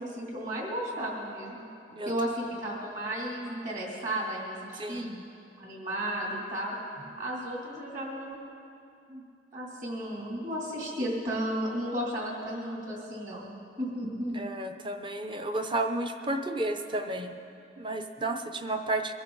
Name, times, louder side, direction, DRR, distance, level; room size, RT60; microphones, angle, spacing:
voice 1, 0.0-1.6 2.0-5.1 5.6-6.7 7.2-8.4 9.1-9.2 9.5-13.5 13.8-14.4, right 1 dB, 40° right, -3 dB, 2.8 m, -34 dB
voice 2, 4.8-5.2 14.3-17.4 17.8-19.1, right 2 dB, 25° right, 6 dB, 0.6 m, -32 dB
22.0 x 12.0 x 4.0 m, 2.7 s
head